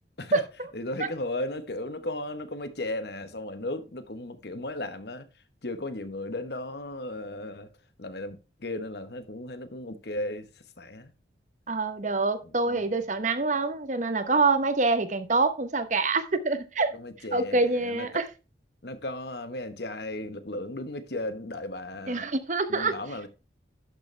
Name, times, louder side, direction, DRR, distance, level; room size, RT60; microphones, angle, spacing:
voice 1, 0.7-5.3 5.6-7.7 8.0-10.5 10.8-11.1 12.6-12.9 16.9-18.3 18.8-22.3 22.7-23.3, left 1 dB, 60° left, 1.1 m, -35 dB
voice 2, 11.7-17.0 17.3-18.3 22.1-23.0, right 3 dB, 40° right, 0.9 m, -26 dB
11.5 x 6.7 x 3.2 m
head